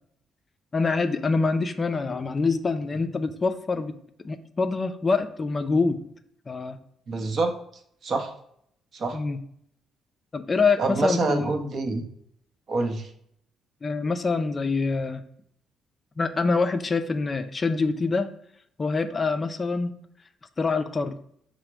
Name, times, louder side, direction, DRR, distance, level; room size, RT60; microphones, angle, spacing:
voice 1, 0.7-4.0 4.2-6.0 6.5-6.8 9.1-9.4 10.3-11.6 13.8-15.2 16.2-18.3 18.8-20.0 20.6-21.2, left 4 dB, 35° left, 9 dB, 0.3 m, -25 dB
voice 2, 7.1-7.5 8.0-8.3 8.9-9.2 10.8-12.0 12.7-13.1, right 3 dB, 55° right, 5 dB, 0.7 m, -26 dB
4.8 x 2.0 x 4.4 m, 0.69 s
cardioid pair, 90°, 0 cm